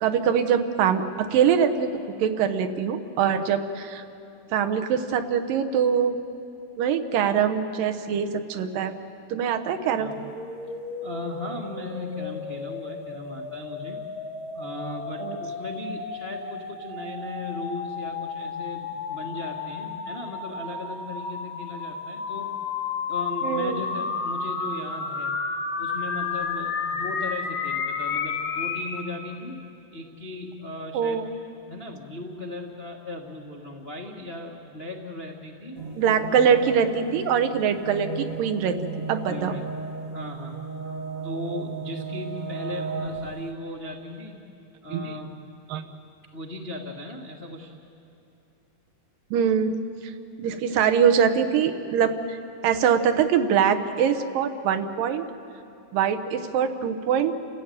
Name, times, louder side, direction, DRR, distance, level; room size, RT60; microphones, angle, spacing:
voice 1, 0.0-1.9 2.2-4.0 4.5-6.2 6.8-8.9 9.3-10.1 15.2-15.4 23.4-23.8 30.9-31.3 36.0-38.8 39.1-39.5 44.9-45.1 45.7-45.8 49.3-49.7 50.0-50.1 50.4-52.4 52.6-55.3 55.9-57.3, right 7 dB, 90° right, 7 dB, 2.8 m, -23 dB
sound 1, 10.1-29.0, left 5 dB, 50° left, 1.9 m, -32 dB
voice 2, 11.0-14.0 14.5-22.5 23.1-25.3 25.8-29.6 29.9-31.2 31.7-35.8 39.3-39.6 40.1-40.7 41.2-44.5 44.8-45.3 46.3-47.7, left 2 dB, 85° left, 0 dB, 0.5 m, -37 dB
sound 2, 35.8-43.5, right 4 dB, 40° right, 1.2 m, -35 dB
29.5 x 15.0 x 9.0 m, 2.7 s
omnidirectional pair, 3.8 m